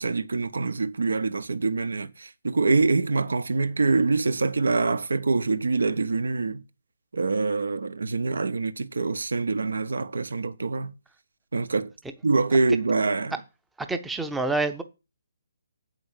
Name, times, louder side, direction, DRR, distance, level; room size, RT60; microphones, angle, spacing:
voice 1, 0.0-6.6 7.1-10.9 11.5-11.9 12.2-13.4, right 3 dB, 65° right, 0.7 m, -25 dB
voice 2, 13.8-14.8, right 3 dB, 5° right, 0.7 m, -27 dB
7.8 x 4.9 x 7.1 m
figure-of-eight pair, 135°, 0 cm